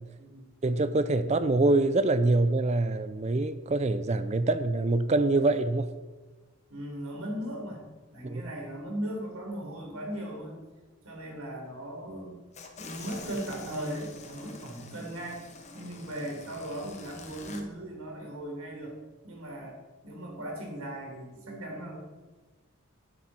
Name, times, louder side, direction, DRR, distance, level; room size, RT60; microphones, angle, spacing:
voice 1, 0.6-5.9 8.2-8.4, right 2 dB, 30° right, 12 dB, 0.4 m, -25 dB
voice 2, 6.7-10.6 11.0-12.4 12.8-15.4 15.7-18.9 19.2-19.8 20.0-22.0, right 1 dB, 75° right, 0 dB, 3.9 m, -38 dB
sound 1, 12.5-17.6, left 3 dB, 30° left, 1.3 m, -47 dB
12.0 x 10.0 x 4.3 m, 1.3 s
head